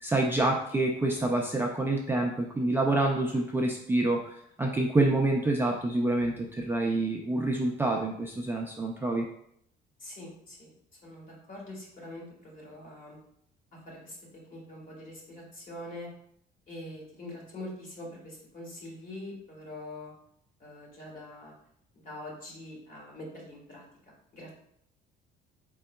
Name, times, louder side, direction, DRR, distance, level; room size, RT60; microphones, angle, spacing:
voice 1, 0.0-4.2 4.6-9.3, right 2 dB, 10° right, -1 dB, 0.3 m, -27 dB
voice 2, 10.0-10.7 11.0-13.2 13.8-14.2 14.5-16.1 16.7-20.1 20.6-21.5 22.0-23.9 24.3-24.5, left 1 dB, 45° left, -2 dB, 1.5 m, -44 dB
4.5 x 3.6 x 2.2 m, 0.70 s
cardioid pair, 140°, 20 cm